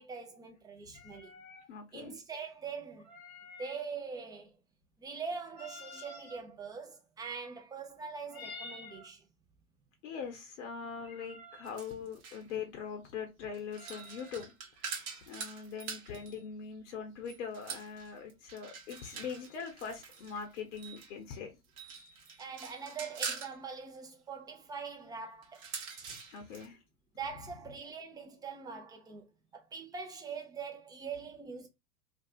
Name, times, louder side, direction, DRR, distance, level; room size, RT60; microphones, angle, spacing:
voice 1, 0.0-1.3 1.9-3.1 3.6-4.6 5.0-9.2 22.4-25.7 27.1-31.7, right 5 dB, 10° right, 0.5 m, -43 dB
sound 1, 0.9-1.7 3.0-3.8 5.5-6.4 8.3-9.1 11.0-11.8 13.7-14.5, left 2 dB, 85° left, 1.0 m, -49 dB
voice 2, 1.7-2.2 10.0-14.5 14.8-14.9 15.3-21.5 26.0-26.8, left 6 dB, 55° left, 0.8 m, -42 dB
sound 2, 11.6-12.5 13.5-16.4 17.3-21.1 21.6-23.6 25.4-26.7, right 6 dB, 45° right, 0.9 m, -44 dB
2.5 x 2.3 x 2.2 m
figure-of-eight pair, 90°, 42 cm